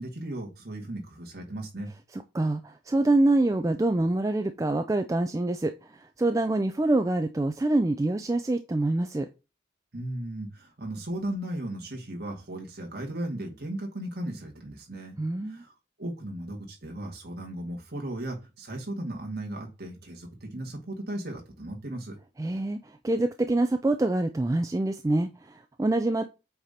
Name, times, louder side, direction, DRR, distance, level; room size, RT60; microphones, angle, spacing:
voice 1, 0.0-1.9 9.9-15.2 15.4-15.7 16.0-22.2, right 1 dB, 55° right, 2.0 m, -36 dB
voice 2, 2.1-9.3 15.2-15.6 22.4-26.2, right 2 dB, 15° right, 0.3 m, -26 dB
7.8 x 2.8 x 5.1 m
head